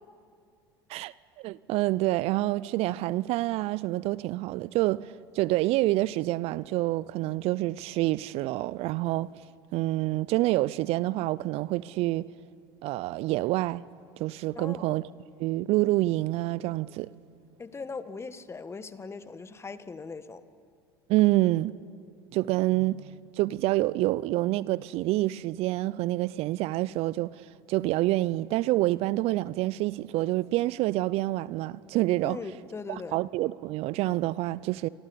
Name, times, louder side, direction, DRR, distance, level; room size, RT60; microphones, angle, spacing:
voice 1, 0.9-9.3 9.7-12.3 12.8-13.8 14.2-15.1 15.4-17.1 21.1-21.8 22.3-27.3 27.7-32.4 32.9-34.9, right 18 dB, 55° right, 0.5 m, -27 dB
voice 2, 14.6-14.9 17.6-20.4 32.2-33.2, left 4 dB, 20° left, 1.4 m, -40 dB
28.0 x 24.0 x 6.9 m
hypercardioid pair, 75°, 13 cm